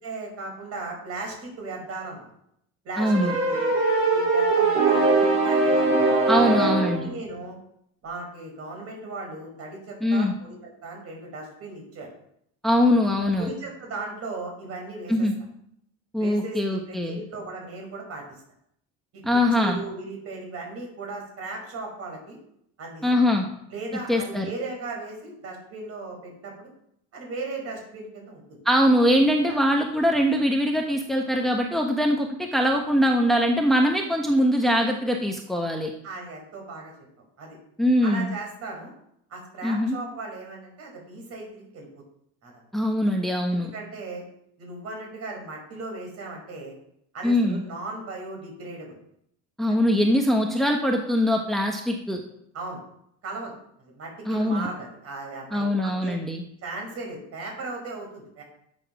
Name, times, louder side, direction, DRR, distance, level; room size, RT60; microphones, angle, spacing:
voice 1, 0.0-2.3 2.8-3.8 4.1-5.9 6.3-7.6 8.0-10.5 10.8-12.1 13.1-15.3 16.2-18.2 19.5-22.4 22.8-23.0 23.7-26.7 27.1-28.6 29.5-29.6 36.0-36.9 37.4-37.6 38.0-38.9 39.3-41.9 42.4-42.6 43.5-44.2 44.6-46.7 47.1-49.0 49.7-49.9 52.5-52.8 53.2-56.2 56.6-58.4, right 3 dB, 50° right, 0 dB, 5.4 m, -37 dB
voice 2, 3.0-3.3 6.3-7.1 10.0-10.3 12.6-13.5 15.1-15.3 16.1-17.2 19.2-19.8 23.0-23.5 24.1-24.5 28.6-35.9 37.8-38.3 39.6-40.0 42.7-43.7 47.2-47.6 49.6-52.2 54.3-54.7 55.5-56.4, equal, ahead, 2 dB, 1.1 m, -22 dB
sound 1, 3.0-7.0, right 3 dB, 80° right, 3.3 m, -21 dB
10.5 x 7.3 x 6.1 m, 0.72 s
cardioid pair, 130°, 31 cm